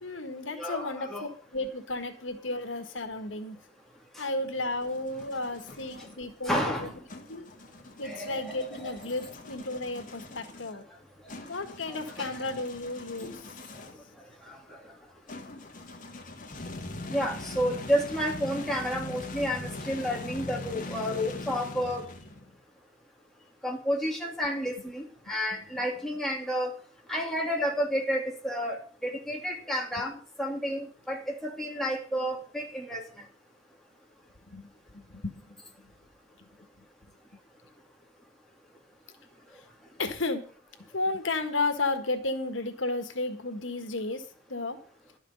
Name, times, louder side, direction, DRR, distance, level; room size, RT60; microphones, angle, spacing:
voice 1, 0.0-1.1 1.5-3.6 4.2-6.9 7.3-7.4 8.0-10.8 11.5-13.6 34.5-35.6 40.0-40.4 40.9-44.8, left 2 dB, 85° left, 8 dB, 1.7 m, -33 dB
voice 2, 0.5-1.3 4.2-4.3 6.4-6.9 8.0-9.1 11.9-12.5 13.2-13.3 14.5-14.6 17.1-22.0 23.6-26.7 27.1-33.0, equal, ahead, -1 dB, 2.9 m, -31 dB
sound 1, 4.4-6.2 7.1-14.1 15.3-22.6, left 2 dB, 45° left, 1.9 m, -42 dB
12.0 x 6.5 x 7.8 m, 0.42 s
head